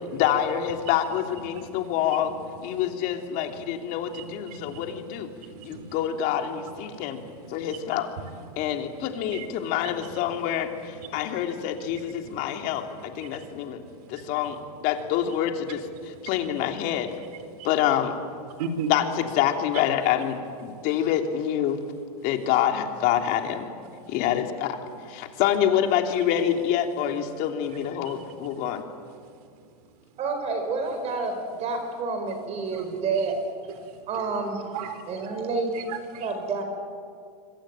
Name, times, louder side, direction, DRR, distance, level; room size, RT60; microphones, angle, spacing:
voice 1, 0.1-2.3 2.6-5.3 5.6-7.2 7.5-8.1 8.6-13.8 14.1-14.6 14.8-17.1 17.6-18.1 18.9-21.8 22.2-23.7 24.1-24.8 25.1-28.8, left 10 dB, 45° left, 4 dB, 3.1 m, -26 dB
voice 2, 1.5-2.3 2.7-3.2 3.6-4.9 5.3-6.0 6.9-7.9 8.5-10.1 11.0-11.2 11.9-12.3 12.9-13.7 14.0-14.3 18.6-18.9 19.7-19.8 28.0-28.1 32.7-32.8 33.8-34.0 34.7-35.0 35.7-36.3, right 5 dB, 70° right, 9 dB, 4.3 m, -39 dB
voice 3, 30.2-33.3 34.1-34.6 35.1-35.7 36.2-36.6, right 4 dB, 30° right, 6 dB, 4.7 m, -29 dB
26.5 x 25.0 x 8.9 m, 2.2 s
supercardioid pair, 135°, 21 cm